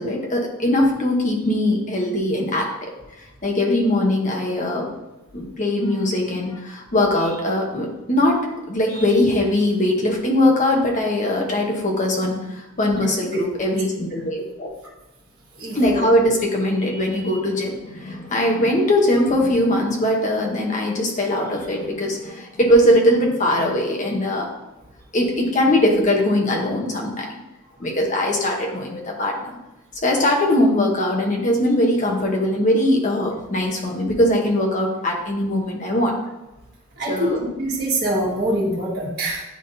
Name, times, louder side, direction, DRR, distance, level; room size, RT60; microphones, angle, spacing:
voice 1, 0.0-2.7 3.4-4.9 5.3-8.4 8.7-14.7 15.7-24.5 25.1-27.3 27.8-29.6 30.0-36.1 37.1-37.4, left 1 dB, 35° left, 0 dB, 1.0 m, -21 dB
voice 2, 13.0-13.4 15.6-16.1 37.0-39.4, right 1 dB, 45° right, -7 dB, 1.8 m, -25 dB
10.0 x 3.6 x 2.7 m, 0.99 s
head